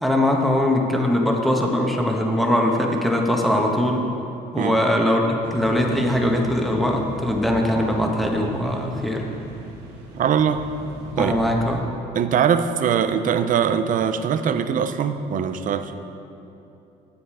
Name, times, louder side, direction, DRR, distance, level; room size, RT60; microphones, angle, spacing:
voice 1, 0.0-4.1 4.5-9.3 11.2-11.8, left 1 dB, ahead, 0 dB, 1.2 m, -21 dB
sound 1, 5.4-11.8, right 1 dB, 80° right, 2.1 m, -38 dB
voice 2, 10.1-10.6 11.2-11.4 12.1-15.9, right 8 dB, 50° right, 10 dB, 0.6 m, -22 dB
10.5 x 7.9 x 4.8 m, 2.8 s
cardioid pair, 110°, 17 cm